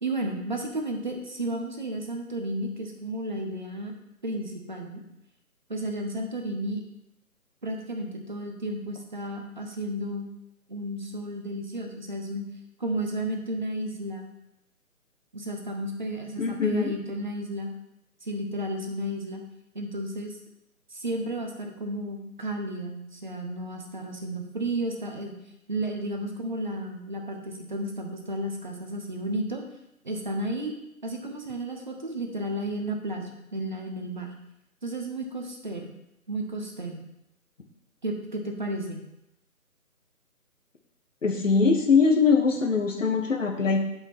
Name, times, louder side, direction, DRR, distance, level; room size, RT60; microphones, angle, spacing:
voice 1, 0.0-3.9 4.2-5.0 5.7-6.8 7.6-10.3 10.7-12.5 12.8-14.3 15.3-17.7 18.2-19.4 19.7-20.4 20.9-25.4 25.7-29.6 30.0-30.8 31.0-34.3 34.8-35.9 36.3-37.0 38.0-39.0, right 1 dB, 30° right, 2 dB, 0.9 m, -33 dB
voice 2, 16.4-16.9 41.2-43.8, left 5 dB, 55° left, 4 dB, 1.4 m, -22 dB
9.4 x 5.4 x 3.6 m, 0.86 s
figure-of-eight pair, 165°, 45 cm